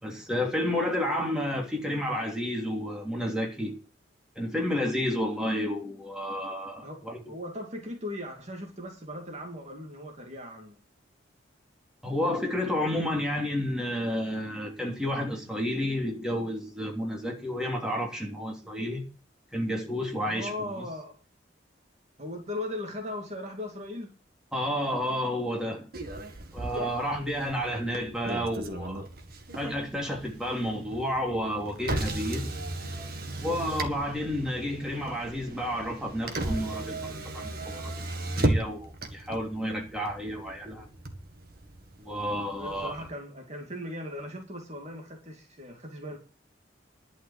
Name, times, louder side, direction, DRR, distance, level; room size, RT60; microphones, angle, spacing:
voice 1, 0.0-3.8 4.3-7.2 12.0-19.0 19.5-20.5 20.8-20.9 24.5-25.9 26.5-29.0 29.5-32.5 33.4-38.0 38.4-40.9 42.0-42.9, equal, 5° right, 3.1 m, -31 dB
voice 2, 6.8-10.8 20.2-21.2 22.2-24.1 27.1-27.5 42.5-46.2, left 1 dB, 35° right, 2.5 m, -38 dB
Motor vehicle (road), 25.9-43.1, right 1 dB, 50° right, 1.8 m, -36 dB
11.5 x 5.7 x 8.9 m
head